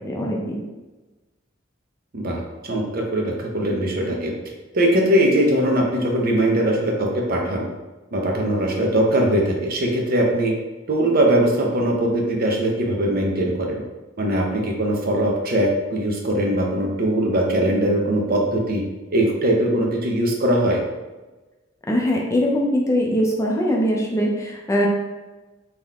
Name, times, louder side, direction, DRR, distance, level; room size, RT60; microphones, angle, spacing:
voice 1, 0.0-0.6 21.9-24.9, equal, 15° left, -1 dB, 0.5 m, -21 dB
voice 2, 2.1-4.3 4.7-7.7 8.1-10.5 10.9-13.8 14.2-18.8 19.1-20.8, right 1 dB, 50° right, 0 dB, 0.7 m, -21 dB
3.7 x 3.0 x 3.6 m, 1.2 s
head